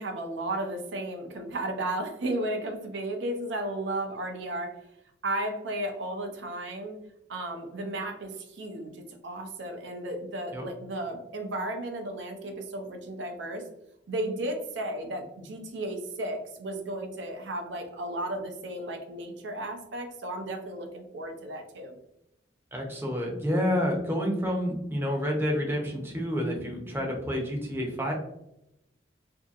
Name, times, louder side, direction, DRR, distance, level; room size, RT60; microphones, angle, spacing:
voice 1, 0.0-4.8 5.2-7.0 7.3-13.7 14.1-22.0, right 1 dB, 70° right, 4 dB, 0.6 m, -34 dB
voice 2, 22.7-28.1, equal, 10° right, 0 dB, 0.6 m, -29 dB
2.7 x 2.6 x 2.4 m, 0.82 s
head